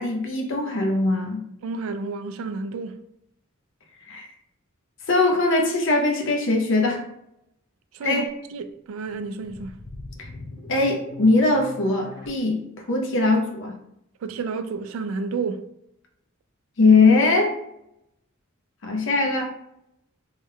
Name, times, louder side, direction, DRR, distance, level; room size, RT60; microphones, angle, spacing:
voice 1, 0.0-1.4 4.1-4.3 5.1-7.0 8.0-8.3 10.2-10.3 10.7-12.6 12.9-13.7 16.8-17.6 18.8-19.5, left 3 dB, 65° left, 0.7 m, -21 dB
voice 2, 1.6-3.0 7.9-8.3 8.5-9.8 14.2-15.7, right 4 dB, 70° right, 0.3 m, -30 dB
sound 1, 9.0-12.3, left 2 dB, 20° left, 0.9 m, -40 dB
3.1 x 2.2 x 3.3 m
head